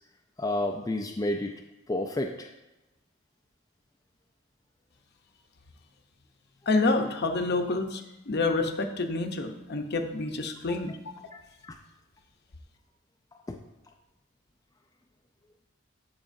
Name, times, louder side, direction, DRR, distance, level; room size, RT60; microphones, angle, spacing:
voice 1, 0.4-1.5 1.9-2.5 11.3-11.8 13.5-13.6, left 1 dB, 15° left, 2 dB, 0.4 m, -30 dB
voice 2, 6.7-11.0, left 3 dB, 50° left, 6 dB, 0.7 m, -28 dB
14.5 x 4.8 x 2.6 m, 1.0 s
head